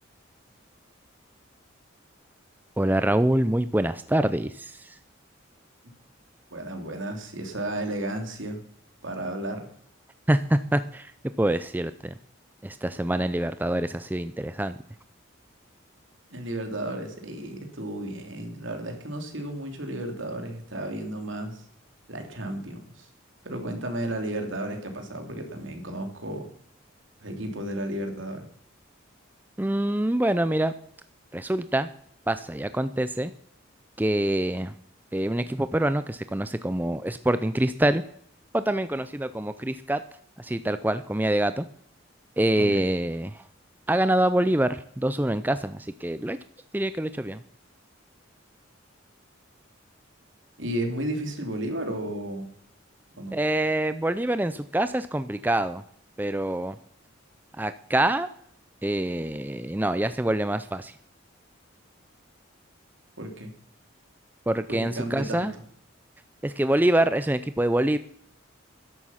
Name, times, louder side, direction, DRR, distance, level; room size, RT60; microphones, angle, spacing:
voice 1, 2.8-4.9 10.3-11.1 11.4-11.9 12.6-14.8 29.6-30.7 31.3-31.9 32.3-33.3 34.0-34.7 35.1-38.0 38.5-40.0 40.4-41.6 42.4-43.4 43.9-46.4 46.7-47.4 53.3-55.8 56.2-56.8 57.6-58.3 58.8-60.9 64.5-65.5 66.4-68.0, right 1 dB, 10° right, 12 dB, 0.4 m, -25 dB
voice 2, 6.5-8.6 9.0-9.7 16.3-21.7 22.1-23.1 23.4-26.5 27.2-28.5 42.6-42.8 50.6-52.5 53.2-53.3 63.2-63.5 64.7-65.5, right 1 dB, 70° right, 4 dB, 3.1 m, -33 dB
13.5 x 11.0 x 5.8 m, 0.66 s
head